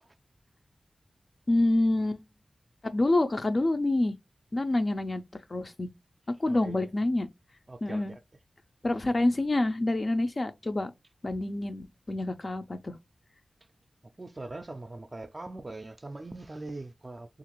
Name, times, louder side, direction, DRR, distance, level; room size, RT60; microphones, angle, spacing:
voice 1, 1.5-2.2 2.9-4.2 4.5-5.2 5.5-5.9 6.4-7.3 7.8-8.1 8.8-10.9 11.2-13.0, left 2 dB, 45° left, 0.4 m, -27 dB
voice 2, 6.5-6.9 7.7-8.2 14.2-17.4, right 2 dB, 40° right, 0.3 m, -41 dB
2.8 x 2.4 x 2.9 m
cardioid pair, 50°, 0 cm